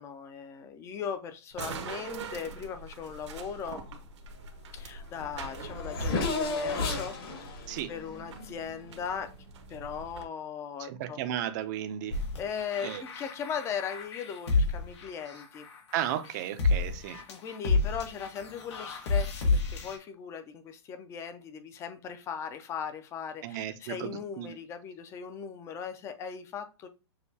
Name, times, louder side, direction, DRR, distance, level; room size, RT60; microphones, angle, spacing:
voice 1, 0.0-3.8 4.7-9.4 9.7-11.2 12.4-15.7 17.3-26.9, left 7 dB, 20° left, 0.5 m, -38 dB
sound 1, 1.5-10.2, right 4 dB, 75° right, 1.0 m, -44 dB
Race car auto racing / Accelerating revving vroom, 4.8-4.9 5.1-9.1, left 3 dB, 55° left, 1.8 m, -33 dB
voice 2, 10.8-12.2 12.8-13.0 15.9-17.2 23.4-24.5, right 11 dB, 40° right, 0.6 m, -34 dB
sound 2, 12.1-20.0, left 3 dB, 75° left, 1.4 m, -30 dB
6.4 x 2.3 x 2.7 m
hypercardioid pair, 150°, 15 cm